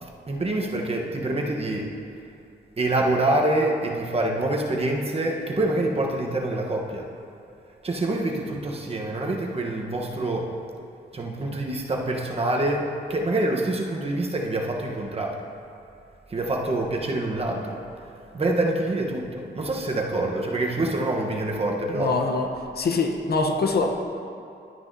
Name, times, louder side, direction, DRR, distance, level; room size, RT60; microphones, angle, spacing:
voice 1, 0.0-1.9 2.8-7.1 7.8-10.5 11.1-15.4 16.3-17.8 18.3-22.1, right 2 dB, 35° right, 0 dB, 1.0 m, -26 dB
voice 2, 21.9-22.5 22.8-23.9, left 3 dB, 60° left, 3 dB, 0.9 m, -23 dB
12.0 x 9.4 x 2.7 m, 2.5 s
cardioid pair, 110°, 18 cm